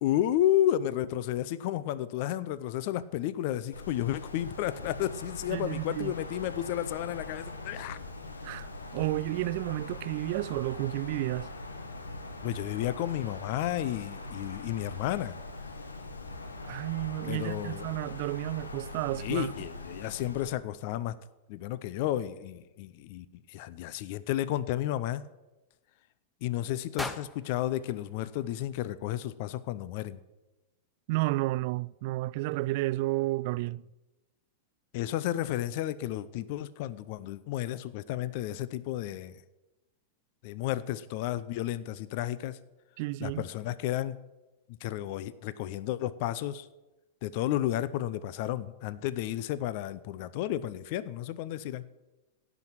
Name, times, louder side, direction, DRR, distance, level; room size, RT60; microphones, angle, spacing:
voice 1, 0.0-8.0 12.4-15.4 17.2-17.9 19.2-21.2 21.5-25.3 26.4-30.2 34.9-39.4 40.4-42.6 43.2-44.2 44.8-46.7 47.2-51.8, left 13 dB, 50° left, 0.6 m, -32 dB
Wind, 3.7-20.5, left 2 dB, 85° left, 1.4 m, -42 dB
voice 2, 5.5-6.1 8.4-11.5 16.6-19.5 31.1-33.8 43.0-43.5, right 19 dB, 50° right, 0.3 m, -31 dB
sound 1, 27.0-29.1, left 1 dB, 10° left, 1.0 m, -42 dB
16.5 x 6.1 x 9.0 m
figure-of-eight pair, 95°, 0 cm